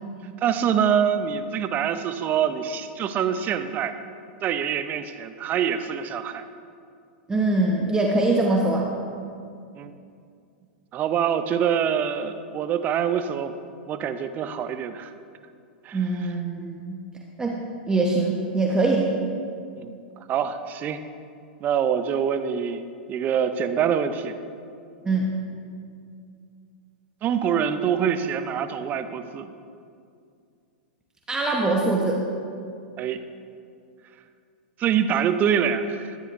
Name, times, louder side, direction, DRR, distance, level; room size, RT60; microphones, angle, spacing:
voice 1, 0.4-4.0 4.4-6.4 9.8-9.9 10.9-13.5 13.9-15.1 15.8-16.0 19.8-19.9 20.3-21.0 21.6-22.8 23.1-24.4 27.2-29.5 33.0-33.2 34.8-36.2, right 8 dB, 35° right, 10 dB, 0.6 m, -25 dB
voice 2, 7.3-8.9 15.9-17.0 17.4-17.6 17.9-19.1 25.0-25.3 31.3-32.2, right 2 dB, 15° right, -1 dB, 0.9 m, -23 dB
13.0 x 9.4 x 2.6 m, 2.4 s
hypercardioid pair, 115°, 5 cm